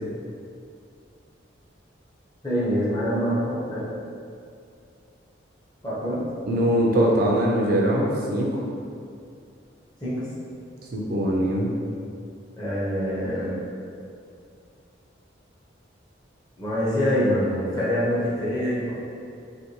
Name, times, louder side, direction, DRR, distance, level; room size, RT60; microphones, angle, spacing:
voice 1, 2.4-3.9 5.8-6.2 10.0-10.3 12.6-13.6 16.6-18.9, equal, 20° left, -9 dB, 0.6 m, -25 dB
voice 2, 6.5-8.5 10.9-11.7, right 1 dB, 50° right, -2 dB, 0.3 m, -22 dB
2.6 x 2.2 x 2.8 m, 2.4 s
head